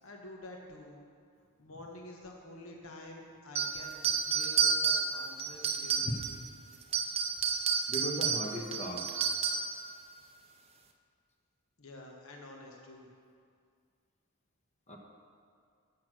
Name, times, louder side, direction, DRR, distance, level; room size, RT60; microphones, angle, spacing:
voice 1, 0.0-1.0 1.6-6.2 11.8-13.1, left 1 dB, 65° left, 0 dB, 1.2 m, -49 dB
sound 1, 3.6-6.5 6.8-9.8, right 6 dB, 25° right, 0.5 m, -30 dB
voice 2, 7.9-9.1 14.9-15.0, equal, 30° left, 1 dB, 1.1 m, -36 dB
8.5 x 7.8 x 6.2 m, 2.2 s
head